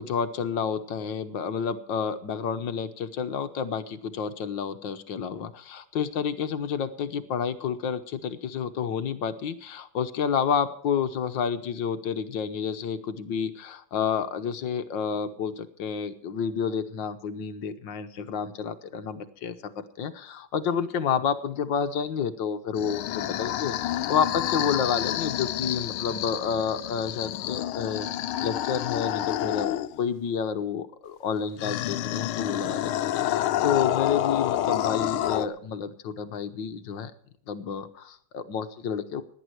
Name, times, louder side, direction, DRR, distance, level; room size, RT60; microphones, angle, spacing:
voice 1, 0.0-28.1 28.4-37.1 37.5-39.2, left 7 dB, 65° left, 10 dB, 1.6 m, -30 dB
sound 1, 22.7-30.0 31.6-35.5, left 13 dB, 80° left, 1.6 m, -29 dB
17.5 x 10.5 x 4.6 m, 0.63 s
omnidirectional pair, 2.3 m